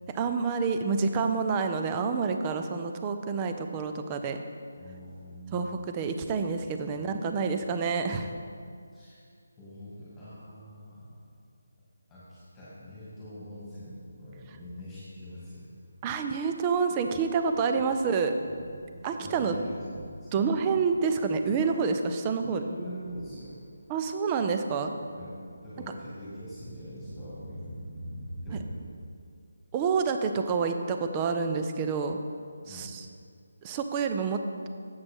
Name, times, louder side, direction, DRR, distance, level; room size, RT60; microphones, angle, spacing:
voice 1, 0.1-4.4 5.5-8.3 16.0-18.3 19.0-19.6 20.3-22.6 23.9-24.9 29.7-32.2 32.7-33.1 33.6-34.7, right 5 dB, 15° right, 7 dB, 0.4 m, -28 dB
voice 2, 4.8-5.7 6.9-7.1 8.9-9.2 9.6-11.1 12.1-15.7 17.7-17.8 18.8-19.8 20.2-20.3 22.4-23.6 25.1-25.3 25.6-27.8 28.4-28.7 32.6-32.9, equal, 5° left, -11 dB, 2.1 m, -44 dB
Thunder, 15.4-29.0, right 1 dB, 45° right, 1.2 m, -47 dB
11.5 x 8.1 x 3.6 m, 2.3 s
hypercardioid pair, 175°, 0 cm